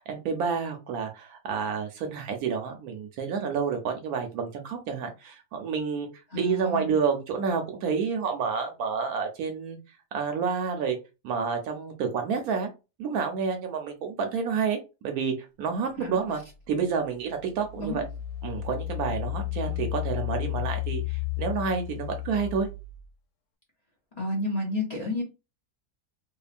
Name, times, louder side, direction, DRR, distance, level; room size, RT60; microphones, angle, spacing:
voice 1, 0.0-9.8 10.1-11.0 11.2-12.7 13.0-14.8 15.0-16.4 16.7-18.0 18.4-22.7, right 6 dB, 70° right, 1.0 m, -29 dB
voice 2, 6.3-7.0 16.0-16.2 17.8-18.0 19.5-19.9 24.2-25.2, left 2 dB, 40° left, 0.6 m, -31 dB
Engine, 16.4-16.5 17.1-23.1, left 14 dB, 85° left, 1.2 m, -33 dB
2.8 x 2.4 x 2.4 m
omnidirectional pair, 1.8 m